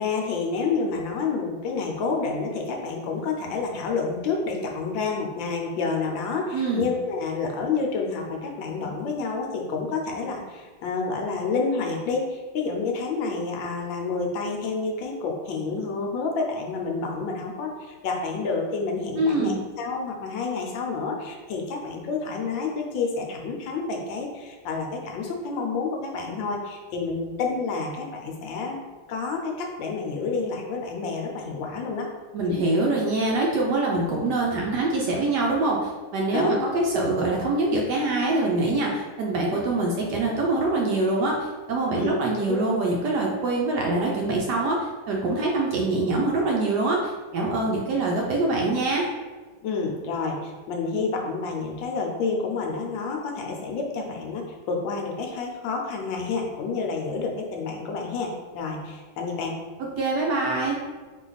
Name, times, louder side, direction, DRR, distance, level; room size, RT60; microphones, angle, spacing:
voice 1, 0.0-28.8 29.1-32.1 32.4-32.5 36.3-36.6 41.9-42.6 49.6-54.4 54.7-59.5, left 4 dB, 75° left, 1 dB, 1.3 m, -29 dB
voice 2, 6.5-6.9 19.2-19.6 32.3-49.1 60.0-60.8, right 2 dB, 70° right, -1 dB, 1.1 m, -24 dB
4.2 x 3.0 x 3.9 m, 1.4 s
omnidirectional pair, 2.2 m